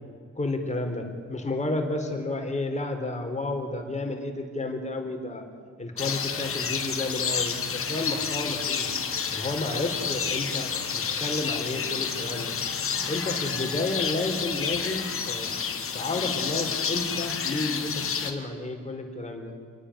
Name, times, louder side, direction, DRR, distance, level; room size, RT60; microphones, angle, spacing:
voice 1, 0.4-1.0 1.3-5.5 5.8-9.0 9.3-10.7 10.9-12.6 13.1-15.5 15.9-19.5, left 2 dB, 25° left, 4 dB, 4.0 m, -31 dB
sound 1, 6.0-18.3, left 6 dB, 45° left, 2.3 m, -30 dB
28.5 x 10.0 x 9.9 m, 2.1 s
cardioid pair, 90°, 30 cm